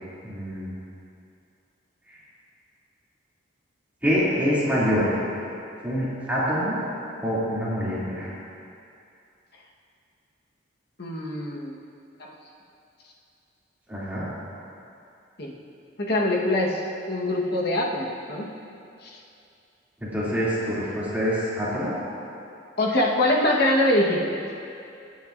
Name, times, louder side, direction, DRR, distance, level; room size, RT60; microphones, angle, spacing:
voice 1, 0.2-0.7 4.0-5.2 5.8-6.8 7.2-8.3 13.9-14.3 20.0-21.9, equal, 10° right, -11 dB, 2.8 m, -25 dB
voice 2, 11.0-11.7 12.2-12.3 15.4-15.5 16.0-16.8 17.1-18.5 19.0-19.1 22.8-24.4, left 1 dB, 50° left, -2 dB, 1.3 m, -23 dB
21.5 x 9.0 x 2.6 m, 2.6 s
head